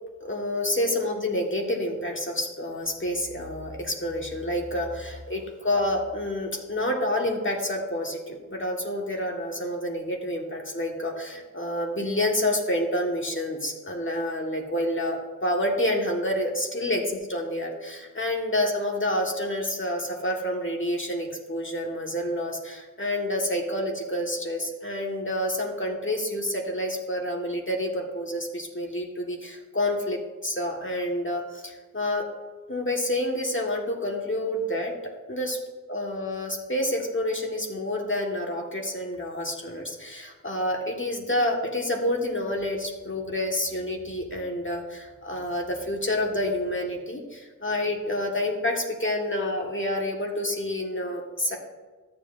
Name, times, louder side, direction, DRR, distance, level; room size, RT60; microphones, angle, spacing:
voice 1, 0.2-17.0 17.3-32.3 32.7-34.9 35.3-35.6 35.9-51.6, left 1 dB, 35° left, 0 dB, 1.6 m, -28 dB
13.5 x 7.5 x 2.6 m, 1.3 s
wide cardioid pair, 40°, 33 cm